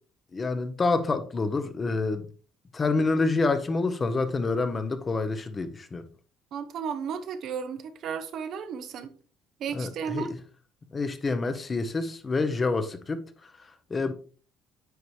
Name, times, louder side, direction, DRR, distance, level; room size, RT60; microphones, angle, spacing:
voice 1, 0.3-2.3 2.7-6.1 9.7-10.4 10.9-14.1, left 3 dB, 30° left, 0.9 m, -28 dB
voice 2, 6.5-9.1 9.6-10.3, right 7 dB, 60° right, 0.8 m, -34 dB
9.3 x 4.1 x 3.2 m
cardioid pair, 105°, 0 cm